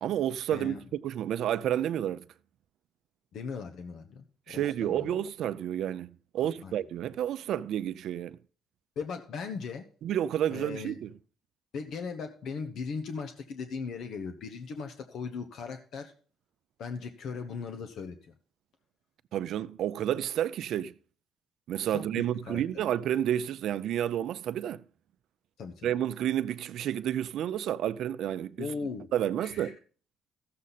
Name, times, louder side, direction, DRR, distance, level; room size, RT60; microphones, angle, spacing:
voice 1, 0.0-2.2 4.5-8.4 10.0-11.1 19.3-20.9 21.7-24.8 25.8-28.7 29.1-29.8, right 11 dB, 70° right, 0.4 m, -30 dB
voice 2, 3.3-5.2 6.4-6.7 9.0-9.9 10.5-11.0 11.7-16.1 16.8-18.3 21.9-22.6 25.6-25.9 28.6-29.1 29.4-29.7, left 5 dB, 65° left, 1.1 m, -38 dB
14.0 x 7.5 x 4.1 m
cardioid pair, 85°, 0 cm